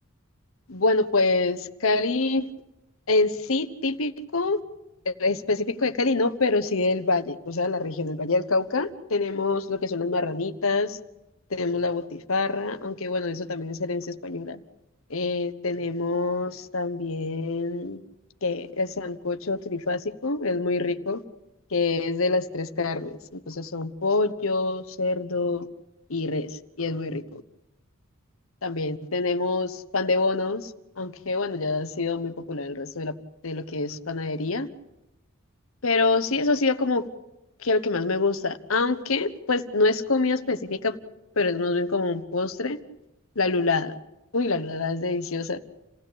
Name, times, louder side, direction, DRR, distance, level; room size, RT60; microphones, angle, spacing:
voice 1, 0.7-2.5 3.1-4.6 5.0-11.0 11.5-14.6 15.1-18.0 18.4-21.2 21.7-25.7 26.1-27.4 28.6-33.2 33.4-34.7 35.8-37.1 37.6-41.0 41.3-42.8 43.3-43.9 44.3-45.6, left 3 dB, 75° left, 11 dB, 1.2 m, -26 dB
28.5 x 16.0 x 8.7 m, 0.95 s
head